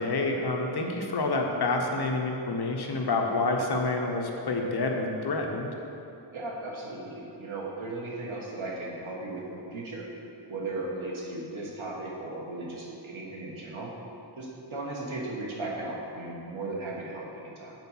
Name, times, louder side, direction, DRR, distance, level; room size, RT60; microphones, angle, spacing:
voice 1, 0.0-5.7, left 3 dB, 55° left, 2 dB, 0.9 m, -28 dB
voice 2, 6.3-10.0 10.5-13.9 14.4-17.7, right 2 dB, 90° right, -3 dB, 1.5 m, -36 dB
7.8 x 4.6 x 5.5 m, 2.9 s
wide cardioid pair, 95°, 46 cm